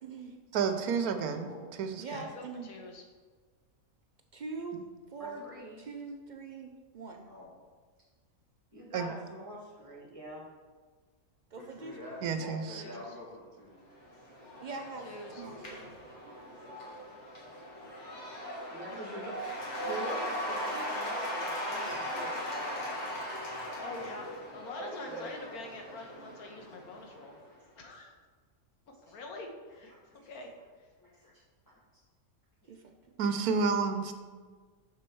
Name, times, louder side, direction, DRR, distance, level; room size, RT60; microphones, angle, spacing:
voice 1, 0.0-0.4 2.0-2.7 4.3-4.8 5.1-5.5 5.8-7.3 11.5-12.0 14.6-15.1 15.4-15.9 18.9-19.2 32.7-33.0, right 4 dB, 60° right, 4 dB, 0.4 m, -43 dB
voice 2, 0.5-1.5 1.8-2.0 8.9-9.1 12.2-12.8 33.2-34.1, right 5 dB, 85° right, 8 dB, 1.2 m, -30 dB
voice 3, 1.0-1.6 7.2-7.5 11.5-13.8 17.5-17.6 27.4-27.5 29.1-29.2 29.9-30.3 31.0-31.4 32.6-32.7, left 1 dB, 15° left, -8 dB, 1.4 m, -48 dB
voice 4, 2.0-3.0 12.7-13.1 15.0-15.4 23.8-24.3 24.5-27.3 27.8-28.1 29.1-29.9 30.3-30.5 30.8-30.9, left 2 dB, 85° left, 3 dB, 1.5 m, -45 dB
voice 5, 5.2-5.8 8.7-10.4 18.7-22.9 24.8-25.3, right 1 dB, 25° right, -2 dB, 1.5 m, -44 dB
Cheering / Applause / Crowd, 13.9-27.4, equal, 50° left, 2.0 m, -39 dB
6.6 x 6.1 x 4.5 m, 1.5 s
omnidirectional pair, 1.5 m